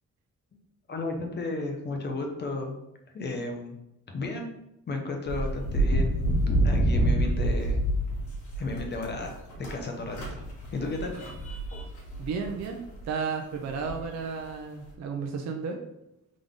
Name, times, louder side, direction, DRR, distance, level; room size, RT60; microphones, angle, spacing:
voice 1, 0.9-2.8 3.1-3.8 4.1-4.5 4.9-6.4 6.6-7.8 8.5-11.1, left 2 dB, 35° left, 2 dB, 0.7 m, -33 dB
sound 1, 5.3-9.8 10.1-13.0 13.9-14.4, right 1 dB, 75° left, 1.5 m, -27 dB
voice 2, 12.2-15.8, right 5 dB, 60° right, 3 dB, 0.6 m, -33 dB
3.8 x 3.6 x 3.5 m, 0.87 s
wide cardioid pair, 160°, 30 cm